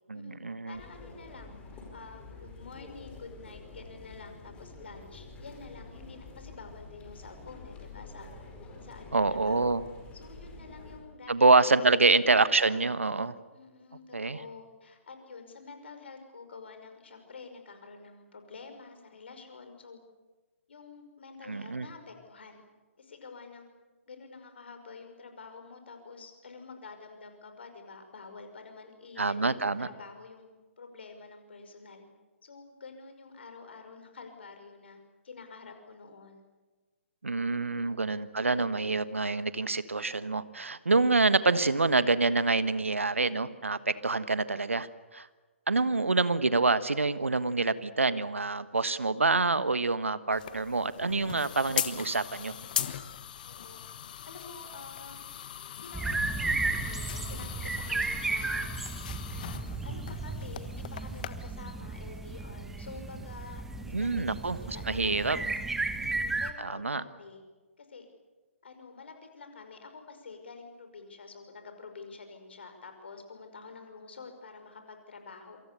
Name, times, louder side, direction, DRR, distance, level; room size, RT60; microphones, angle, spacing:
voice 1, 0.1-0.8 9.1-9.8 11.3-13.3 14.1-14.4 21.5-21.9 29.2-29.9 37.2-45.3 45.7-52.5 63.9-65.4 66.6-67.0, right 3 dB, 70° right, 15 dB, 1.4 m, -26 dB
voice 2, 0.7-1.5 1.9-8.3 8.8-9.8 10.1-11.6 11.8-12.1 13.5-20.0 20.7-22.7 23.0-23.7 24.1-30.5 30.8-32.0 32.4-35.0 35.2-36.4 37.7-38.1 53.4-53.9 54.2-55.3 55.8-58.7 59.3-65.5 65.9-67.4 67.8-68.1 68.6-75.6, left 4 dB, 55° left, 6 dB, 5.5 m, -48 dB
sound 1, 0.7-11.0, left 3 dB, 15° left, 4.9 m, -48 dB
sound 2, 50.3-61.3, left 10 dB, 40° left, 1.3 m, -39 dB
sound 3, 55.9-66.5, right 3 dB, 5° right, 1.2 m, -34 dB
27.0 x 25.5 x 6.9 m, 1.3 s
figure-of-eight pair, 130°, 7 cm